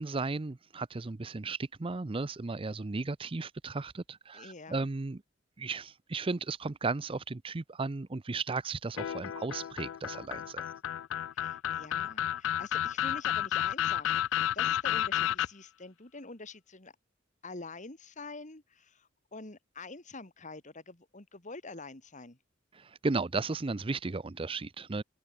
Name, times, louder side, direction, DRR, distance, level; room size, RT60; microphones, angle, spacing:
voice 1, 0.0-5.2 5.6-10.6 22.7-25.0, right 3 dB, 25° right, 0.5 m, -35 dB
voice 2, 4.3-4.9 11.3-16.9 17.4-22.4, left 3 dB, 40° left, 2.3 m, -46 dB
sound 1, 9.0-15.5, left 11 dB, 65° left, 0.3 m, -31 dB
head